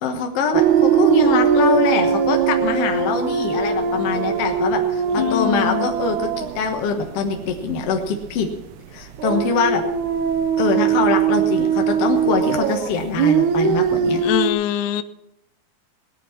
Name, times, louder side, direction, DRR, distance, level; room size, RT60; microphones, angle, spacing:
voice 1, 0.0-8.5 8.9-9.8 10.6-14.2, left 5 dB, 60° left, 4 dB, 1.8 m, -23 dB
sound 1, 0.5-8.0 8.2-8.5 9.1-14.5, right 7 dB, 70° right, 2.1 m, -20 dB
voice 2, 5.2-5.9 14.2-15.0, left 13 dB, 80° left, 12 dB, 1.8 m, -23 dB
19.0 x 9.3 x 5.7 m, 0.88 s
omnidirectional pair, 4.1 m